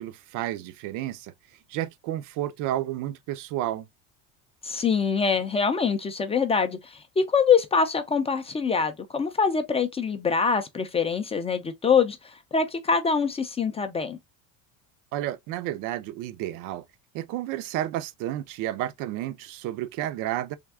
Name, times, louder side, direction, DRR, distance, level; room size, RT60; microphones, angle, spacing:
voice 1, 0.0-1.3 1.7-3.9 15.1-16.8 17.1-20.6, right 13 dB, 55° right, 0.5 m, -31 dB
voice 2, 4.6-12.2 12.5-14.2, left 5 dB, 15° left, 0.4 m, -24 dB
3.5 x 2.3 x 3.4 m
supercardioid pair, 115°, 37 cm